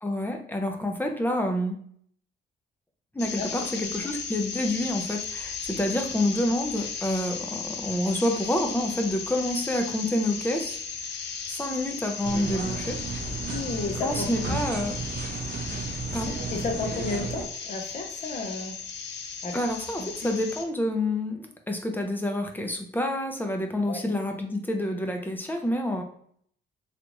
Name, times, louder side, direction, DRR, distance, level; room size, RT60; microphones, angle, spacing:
voice 1, 0.0-1.8 3.1-10.8 11.5-13.0 14.0-14.9 16.1-16.3 19.5-26.0, left 1 dB, 10° left, 3 dB, 0.6 m, -28 dB
sound 1, 3.2-20.6, left 6 dB, 60° left, 0.6 m, -36 dB
sound 2, 12.2-17.5, right 4 dB, 50° right, 0.6 m, -33 dB
voice 2, 13.5-14.6 16.5-18.7 19.4-19.6 20.0-20.4 23.9-24.1, left 3 dB, 40° left, 2 dB, 0.9 m, -33 dB
3.3 x 2.5 x 3.0 m, 0.63 s
cardioid pair, 90°, 20 cm